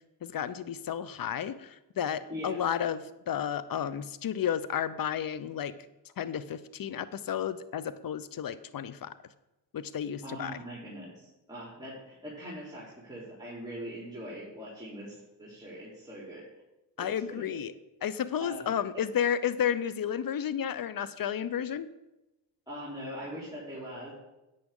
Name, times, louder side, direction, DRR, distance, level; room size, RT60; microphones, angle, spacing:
voice 1, 0.2-5.7 6.2-9.1 9.7-10.6 17.0-17.7 18.0-21.9, left 9 dB, 50° left, 15 dB, 0.7 m, -32 dB
voice 2, 10.2-16.4 17.0-17.6 18.4-18.7 22.7-24.1, equal, 10° right, -6 dB, 3.6 m, -42 dB
9.8 x 8.5 x 3.8 m, 0.96 s
supercardioid pair, 50°, 44 cm